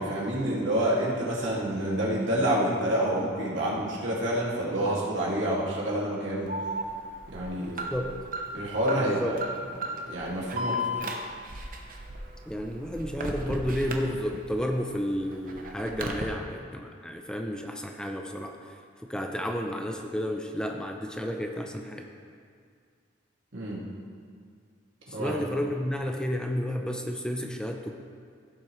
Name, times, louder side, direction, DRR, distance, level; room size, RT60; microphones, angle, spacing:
voice 1, 0.0-6.5 7.3-7.8 8.5-9.4 10.1-11.0 23.5-23.8 25.1-25.3, right 1 dB, 75° right, -5 dB, 2.3 m, -28 dB
Alarm, 6.5-14.6 15.0-16.2, equal, 50° right, 0.9 m, -35 dB
voice 2, 9.0-9.4 12.5-18.5 19.0-22.1 25.1-27.9, equal, 5° left, 2 dB, 0.6 m, -31 dB
16.0 x 7.5 x 3.2 m, 2.2 s
head